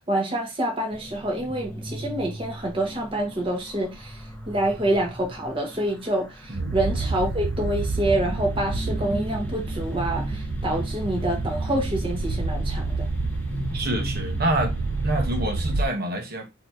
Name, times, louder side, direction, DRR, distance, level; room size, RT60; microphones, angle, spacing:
voice 1, 0.0-13.1, right 1 dB, 25° right, 1.2 m, -27 dB
sound 1, 0.9-15.9, equal, 10° left, 0.7 m, -37 dB
sound 2, 6.5-15.8, right 3 dB, 80° right, 0.6 m, -29 dB
voice 2, 13.7-14.7 15.0-16.5, right 1 dB, 45° right, 1.1 m, -27 dB
4.1 x 2.9 x 4.4 m
head